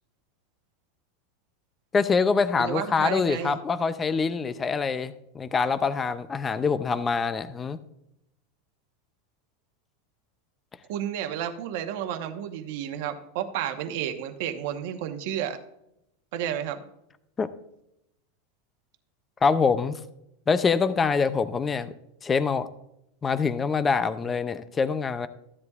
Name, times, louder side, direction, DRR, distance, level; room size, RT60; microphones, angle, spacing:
voice 1, 1.9-7.8 17.4-17.5 19.4-20.0 20.5-21.9 22.2-22.7 23.2-25.3, left 5 dB, 15° left, 12 dB, 0.4 m, -25 dB
voice 2, 2.6-3.6 10.9-15.6 16.3-16.8, right 10 dB, 55° right, 7 dB, 1.0 m, -31 dB
14.5 x 11.0 x 2.4 m, 0.80 s
supercardioid pair, 165°, 0 cm